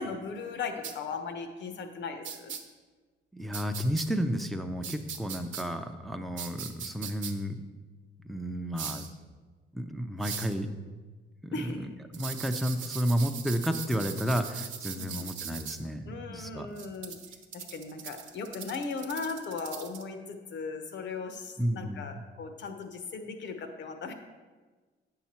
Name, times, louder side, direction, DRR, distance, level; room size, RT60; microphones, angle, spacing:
voice 1, 0.0-2.5 11.5-11.9 14.9-15.3 16.1-17.2 17.5-24.1, left 4 dB, 65° left, 7 dB, 0.9 m, -37 dB
sound 1, 0.8-0.9 2.2-2.6 3.5-4.1 4.8-5.6 6.4-7.3 8.8-9.1 10.2-10.5 12.1-15.8 16.8-20.0, right 7 dB, 75° right, 0.9 m, -39 dB
voice 2, 3.3-7.6 8.2-9.1 9.7-10.7 11.4-16.7 21.6-22.1, equal, ahead, 5 dB, 0.6 m, -32 dB
8.2 x 5.8 x 4.3 m, 1.3 s
cardioid pair, 90°, 20 cm